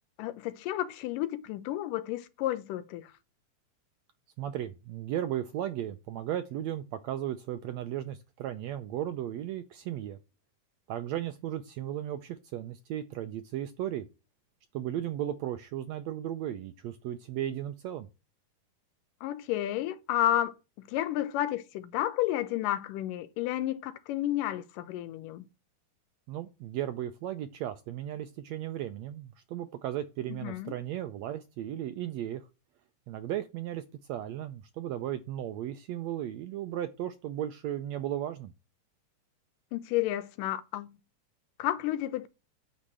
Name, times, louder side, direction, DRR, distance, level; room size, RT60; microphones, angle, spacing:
voice 1, 0.2-3.1 19.2-20.5 20.9-25.4 30.3-30.7 39.7-40.9 41.6-42.3, left 13 dB, 90° left, 2.4 m, -31 dB
voice 2, 4.4-10.2 10.9-14.1 14.7-18.1 26.3-32.5 33.1-33.8 34.1-38.5, right 11 dB, 85° right, 1.6 m, -35 dB
9.9 x 4.2 x 7.5 m
omnidirectional pair, 3.7 m